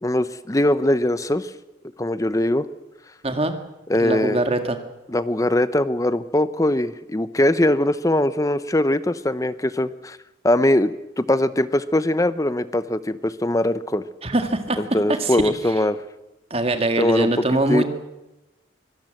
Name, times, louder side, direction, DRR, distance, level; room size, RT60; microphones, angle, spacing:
voice 1, 0.0-1.5 2.0-2.7 3.9-4.4 5.1-10.2 10.4-14.1 14.8-16.0 17.0-17.8, left 1 dB, 15° left, 14 dB, 0.7 m, -21 dB
voice 2, 3.2-3.6 4.0-4.8 14.2-14.8 15.2-15.5 16.5-17.9, right 1 dB, 30° right, 7 dB, 1.9 m, -22 dB
24.0 x 17.0 x 7.6 m, 0.98 s
head